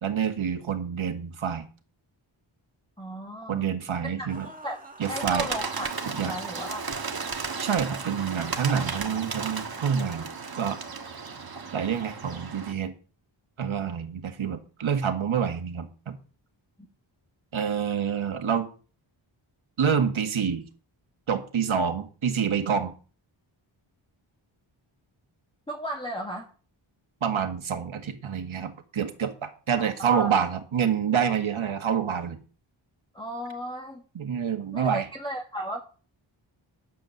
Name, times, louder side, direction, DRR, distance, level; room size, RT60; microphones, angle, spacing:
voice 1, 0.0-1.6 3.5-4.5 5.0-5.5 6.1-6.3 7.6-10.3 10.5-10.8 11.7-12.9 13.6-16.2 17.5-18.7 19.8-20.6 21.3-22.9 27.2-32.4 34.2-35.1, right 7 dB, 75° right, 6 dB, 1.6 m, -27 dB
voice 2, 3.0-3.6 4.2-5.9 6.3-6.9 25.7-26.5 30.0-30.3 33.1-34.0 34.7-35.8, equal, 10° left, 1 dB, 1.4 m, -35 dB
sound 1, 4.3-6.5, right 2 dB, 15° right, 1.7 m, -46 dB
Bird, 5.0-12.7, right 5 dB, 50° right, 1.4 m, -34 dB
9.7 x 7.5 x 6.6 m, 0.38 s
wide cardioid pair, 110°, 48 cm